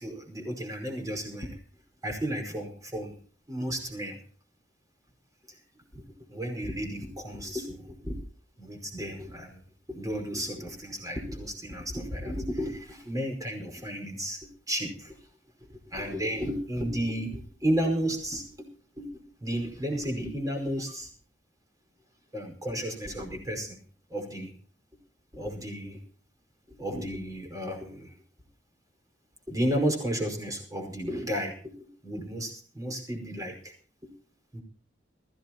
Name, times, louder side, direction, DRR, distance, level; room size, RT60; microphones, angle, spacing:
voice 1, 0.0-1.6 2.0-3.2 3.5-4.2 5.5-5.6 5.9-6.0 6.3-8.2 8.6-9.6 9.9-15.2 15.7-18.7 19.0-21.1 22.3-23.8 24.1-24.5 25.3-26.0 26.7-28.2 29.5-33.7 34.0-34.1 34.5-34.6, equal, 20° right, 3 dB, 5.1 m, -33 dB
22.5 x 15.5 x 3.0 m, 0.44 s
head